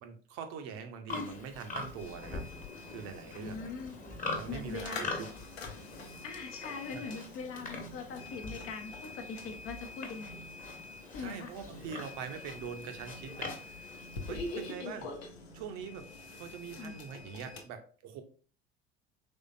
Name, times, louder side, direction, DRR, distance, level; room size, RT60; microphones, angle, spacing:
voice 1, 0.0-2.4 2.9-3.7 4.3-5.3 5.7-5.8 6.9-7.2 11.2-15.1 15.5-16.1 16.4-18.2, right 6 dB, 55° right, 7 dB, 0.8 m, -43 dB
Livestock farm animals working animals, 1.1-14.7, left 3 dB, 25° left, 1.2 m, -44 dB
sound 1, 2.0-17.6, left 3 dB, 80° left, 0.8 m, -46 dB
voice 2, 3.3-4.0 4.5-5.2 6.2-10.4 11.1-11.5 16.8-17.0, left 5 dB, 45° left, 6 dB, 0.8 m, -42 dB
3.6 x 3.3 x 2.6 m, 0.40 s
hypercardioid pair, 65°, 31 cm